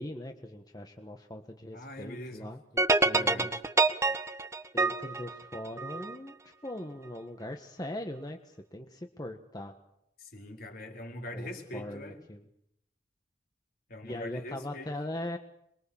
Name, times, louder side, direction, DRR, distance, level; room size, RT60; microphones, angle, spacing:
voice 1, 0.0-3.5 4.7-6.3 6.6-9.7 11.3-12.4 14.0-15.4, left 1 dB, 25° left, 4 dB, 1.6 m, -40 dB
voice 2, 1.7-2.5 3.1-3.5 10.2-12.2 13.9-14.9, left 1 dB, 55° left, 2 dB, 4.7 m, -42 dB
sound 1, 2.8-6.1, right 3 dB, 15° right, 1.4 m, -27 dB
28.0 x 22.5 x 7.3 m, 0.77 s
head